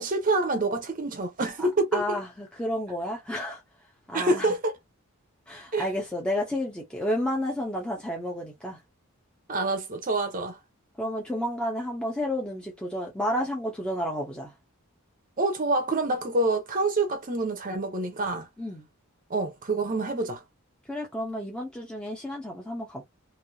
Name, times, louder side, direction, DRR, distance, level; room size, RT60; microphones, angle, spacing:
voice 1, 0.0-2.2 4.1-4.7 5.7-5.9 9.5-10.6 15.4-18.5 19.3-20.4, right 2 dB, 40° right, 0.7 m, -27 dB
voice 2, 1.6-3.6 4.1-4.5 5.5-8.8 11.0-14.5 18.6-18.9 20.9-23.0, equal, 5° left, 0.7 m, -31 dB
3.2 x 2.6 x 2.7 m
head